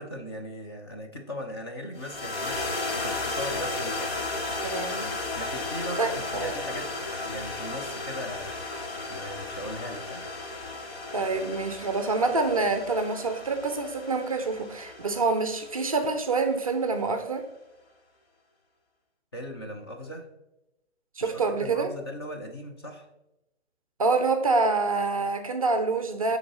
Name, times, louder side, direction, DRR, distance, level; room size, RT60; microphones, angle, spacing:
voice 1, 0.0-4.3 5.3-8.6 9.1-10.2 19.3-20.3 21.2-23.1, equal, 25° left, 2 dB, 0.5 m, -39 dB
sound 1, 2.0-16.4, left 2 dB, 65° left, 1.4 m, -34 dB
voice 2, 4.6-5.1 6.0-6.5 11.1-17.5 21.2-21.9 24.0-26.4, right 3 dB, 35° right, 7 dB, 0.4 m, -26 dB
11.0 x 3.9 x 2.9 m, 0.93 s
hypercardioid pair, 150°, 33 cm